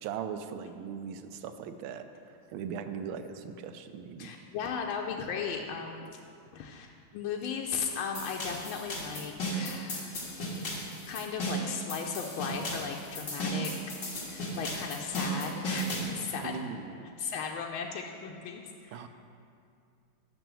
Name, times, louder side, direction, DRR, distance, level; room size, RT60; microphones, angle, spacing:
voice 1, 0.0-2.0 2.5-4.3 16.4-17.1 18.9-19.1, right 7 dB, 90° right, 9 dB, 1.4 m, -39 dB
voice 2, 4.2-6.1 6.5-10.3 11.1-13.7 14.2-16.7 17.2-19.1, left 6 dB, 90° left, 1 dB, 1.5 m, -36 dB
sound 1, 8.1-16.1, equal, 60° left, 2.2 m, -35 dB
6.9 x 6.1 x 7.4 m, 2.4 s
omnidirectional pair, 2.2 m